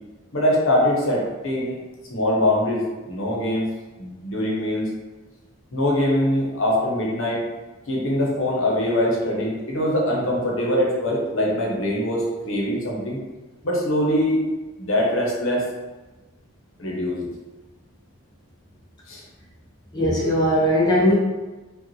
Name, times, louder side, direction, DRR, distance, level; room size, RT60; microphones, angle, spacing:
voice 1, 0.3-1.8 2.1-3.7 4.0-4.9 5.7-7.4 7.9-13.2 13.6-14.4 14.8-15.7 16.8-17.3 19.1-19.2, left 1 dB, 65° left, -3 dB, 1.0 m, -23 dB
voice 2, 19.9-21.1, equal, 20° left, -6 dB, 0.7 m, -19 dB
5.1 x 2.5 x 3.0 m, 1.2 s
head